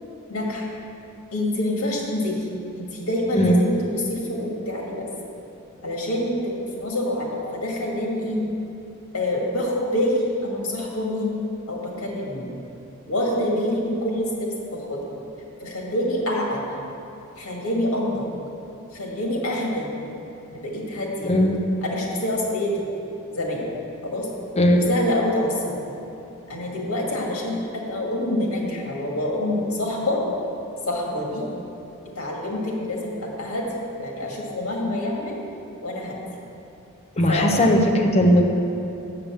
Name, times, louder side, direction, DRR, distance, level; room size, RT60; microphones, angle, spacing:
voice 1, 0.3-0.6 1.3-2.5 2.7-5.1 5.8-8.4 9.1-12.5 13.1-15.0 15.6-16.7 17.4-18.3 18.9-19.9 20.5-21.3 21.8-22.8 23.3-23.6 24.0-24.3 24.7-25.8 26.5-30.2 30.9-31.5 32.2-33.7 34.0-35.4 35.8-36.2 37.3-37.5, left 1 dB, 90° left, -1 dB, 1.9 m, -26 dB
voice 2, 21.2-21.6 24.6-24.9 37.2-38.6, equal, 30° left, 1 dB, 0.8 m, -18 dB
7.2 x 6.9 x 7.1 m, 2.9 s
head